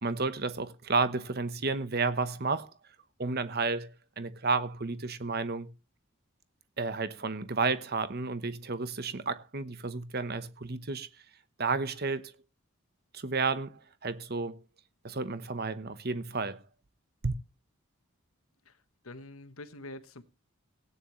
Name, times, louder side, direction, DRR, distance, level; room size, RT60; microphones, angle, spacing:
voice 1, 0.0-2.7 3.2-5.7 6.8-11.1 11.6-12.3 13.1-14.6 15.0-16.6 17.2-17.3, right 4 dB, 45° right, 1.0 m, -31 dB
voice 2, 19.0-20.2, left 2 dB, 75° left, 1.2 m, -45 dB
16.5 x 9.7 x 3.1 m
head